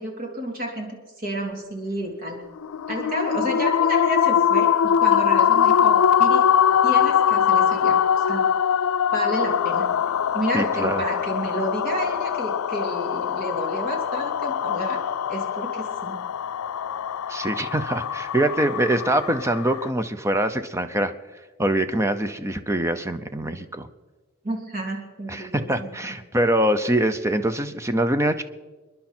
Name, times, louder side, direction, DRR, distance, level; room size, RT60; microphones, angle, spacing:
voice 1, 0.0-2.4 2.9-6.5 6.8-8.5 9.1-9.9 10.3-15.0 15.3-16.2 24.4-26.1, equal, 45° right, 1 dB, 3.0 m, -30 dB
sound 1, 2.6-19.9, left 8 dB, 85° left, 0.4 m, -22 dB
voice 2, 10.5-11.0 17.3-21.1 21.6-23.9 25.3-28.4, right 1 dB, 15° right, 10 dB, 0.7 m, -24 dB
27.5 x 10.5 x 4.4 m, 1.3 s
head